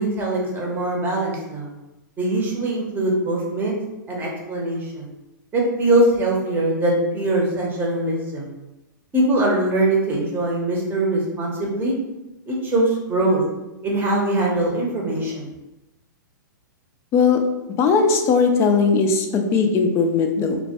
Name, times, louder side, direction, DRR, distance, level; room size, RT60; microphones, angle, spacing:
voice 1, 0.0-1.7 2.2-3.7 4.1-5.1 5.5-8.5 9.1-11.9 12.5-13.4 13.8-15.5, right 1 dB, 20° right, -2 dB, 0.7 m, -22 dB
voice 2, 17.1-17.4 17.8-20.6, left 5 dB, 25° left, 5 dB, 0.3 m, -18 dB
2.2 x 2.1 x 2.8 m, 0.96 s
hypercardioid pair, 115°, 11 cm